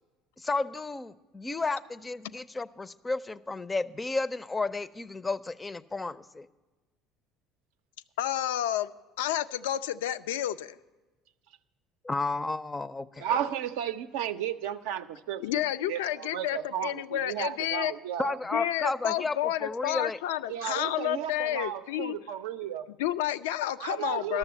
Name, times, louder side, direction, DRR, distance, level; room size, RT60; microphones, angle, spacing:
voice 1, 0.4-6.5 12.0-13.3 18.2-19.3 19.6-20.2, left 3 dB, 20° left, 0.4 m, -32 dB
voice 2, 8.2-8.9 9.2-10.8 15.4-17.9 18.5-22.2 23.0-24.4, left 12 dB, 85° left, 0.3 m, -30 dB
voice 3, 13.2-18.4 20.5-22.9 23.8-24.4, right 10 dB, 80° right, 0.5 m, -34 dB
12.0 x 6.9 x 8.0 m
hypercardioid pair, 75°, 0 cm